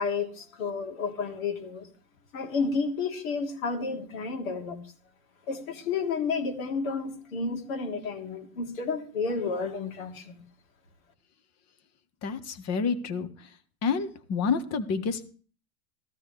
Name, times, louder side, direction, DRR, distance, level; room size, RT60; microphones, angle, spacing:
voice 1, 0.0-1.8 2.3-4.8 5.5-10.4, left 4 dB, 70° left, 1 dB, 3.2 m, -31 dB
voice 2, 12.2-13.3 13.8-15.2, left 5 dB, 35° left, 11 dB, 1.6 m, -28 dB
15.0 x 13.0 x 3.4 m, 0.41 s
hypercardioid pair, 105°, 43 cm